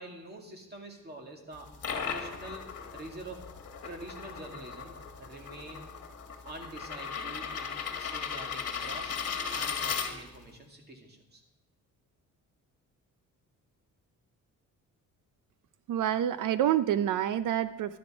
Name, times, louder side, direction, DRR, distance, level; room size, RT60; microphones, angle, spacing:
voice 1, 0.0-2.7 2.9-3.5 3.8-5.9 6.4-9.1 9.5-11.4, right 2 dB, 30° right, 2 dB, 2.3 m, -46 dB
sound 1, 1.5-10.5, left 6 dB, 50° left, 1.6 m, -37 dB
voice 2, 15.9-18.0, right 11 dB, 70° right, 13 dB, 0.6 m, -27 dB
12.5 x 10.5 x 5.0 m, 0.91 s
cardioid pair, 135°, 32 cm